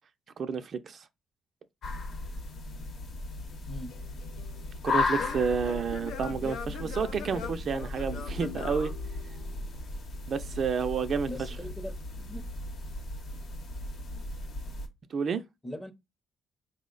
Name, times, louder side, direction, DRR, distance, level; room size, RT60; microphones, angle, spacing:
voice 1, 0.4-1.1 4.8-8.9 10.3-11.6 15.1-15.4, right 6 dB, 55° right, 0.4 m, -30 dB
sound 1, 1.8-14.9, left 3 dB, 65° left, 0.9 m, -36 dB
Singing / Plucked string instrument, 3.9-9.8, left 7 dB, 80° left, 0.5 m, -42 dB
voice 2, 11.2-12.5 15.6-15.9, equal, 10° left, 0.6 m, -41 dB
4.2 x 2.1 x 3.8 m
cardioid pair, 90°, 0 cm